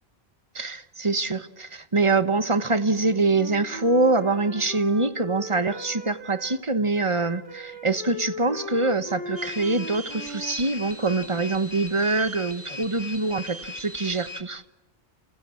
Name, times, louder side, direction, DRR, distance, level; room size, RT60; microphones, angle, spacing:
voice 1, 0.5-14.6, right 3 dB, 30° right, 1.2 m, -24 dB
Wind instrument woodwind instrument, 2.8-6.6 6.9-11.5, equal, 55° right, 3.9 m, -39 dB
sound 1, 9.4-14.4, left 2 dB, 15° right, 2.0 m, -39 dB
29.5 x 28.5 x 7.2 m
omnidirectional pair, 1.0 m